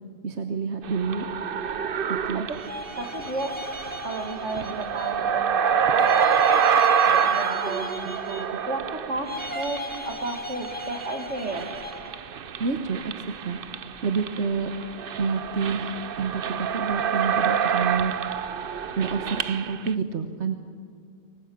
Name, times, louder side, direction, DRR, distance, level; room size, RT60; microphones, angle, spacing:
voice 1, 0.2-1.2 2.2-2.5 8.0-8.1 12.6-13.6 14.0-14.7 15.2-18.1 19.0-20.5, right 5 dB, 75° right, 7 dB, 1.4 m, -28 dB
sound 1, 0.8-10.4 10.6-19.9, right 7 dB, 55° right, 0.9 m, -27 dB
sound 2, 2.5-5.3 5.9-8.7 9.2-12.2, left 1 dB, 10° left, 2.3 m, -37 dB
voice 2, 3.0-3.6 4.0-6.2 7.1-11.7, right 3 dB, 90° right, 5 dB, 2.5 m, -33 dB
24.0 x 20.5 x 8.6 m, 2.2 s
omnidirectional pair, 1.2 m